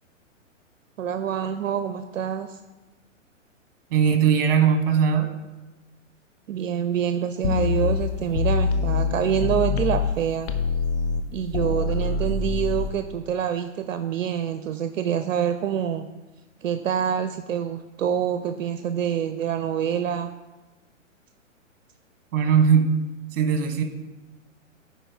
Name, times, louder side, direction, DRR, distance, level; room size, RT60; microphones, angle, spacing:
voice 1, 1.0-2.6 6.5-10.5 11.3-16.1 16.6-20.3, right 9 dB, 75° right, 8 dB, 0.5 m, -26 dB
voice 2, 3.9-5.3 22.3-22.9 23.3-23.8, right 7 dB, 45° right, 6 dB, 1.1 m, -19 dB
sound 1, 7.4-10.2 10.5-12.9, left 5 dB, 55° left, 0.8 m, -25 dB
9.8 x 4.4 x 3.5 m, 1.1 s
hypercardioid pair, 125°, 39 cm